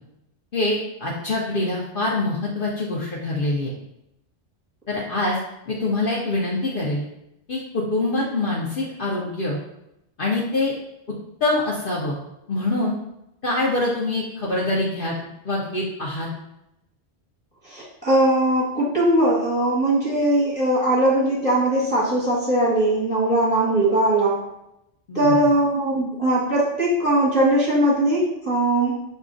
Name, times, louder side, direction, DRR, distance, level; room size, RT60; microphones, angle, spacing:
voice 1, 0.5-3.7 4.9-5.4 5.7-7.0 7.5-9.6 10.2-10.7 11.4-12.1 12.5-13.0 13.4-15.1 15.4-16.3 25.1-25.4, left 2 dB, 55° left, -4 dB, 0.8 m, -24 dB
voice 2, 17.6-24.4 25.1-29.0, right 1 dB, 10° right, -7 dB, 1.1 m, -20 dB
6.2 x 2.3 x 2.5 m, 0.84 s
omnidirectional pair, 1.2 m